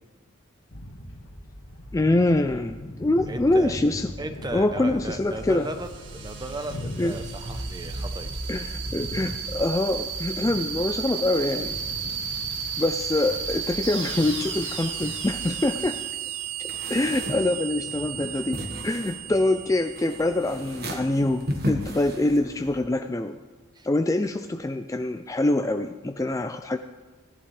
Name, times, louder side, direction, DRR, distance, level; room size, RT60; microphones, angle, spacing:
sound 1, 0.7-15.9, left 1 dB, 75° left, 1.5 m, -41 dB
voice 1, 1.9-4.1 4.5-5.7 7.0-7.2 8.5-11.8 12.8-16.0 16.9-23.4 23.8-26.8, left 2 dB, 15° left, 7 dB, 0.3 m, -25 dB
voice 2, 3.3-3.8 4.2-8.3 23.7-23.9, right 2 dB, 20° right, 7 dB, 0.8 m, -36 dB
sound 2, 5.0-21.4, right 6 dB, 65° right, 1.6 m, -34 dB
sound 3, 16.7-22.8, equal, 50° right, 1.5 m, -35 dB
17.0 x 11.0 x 3.3 m, 1.3 s
head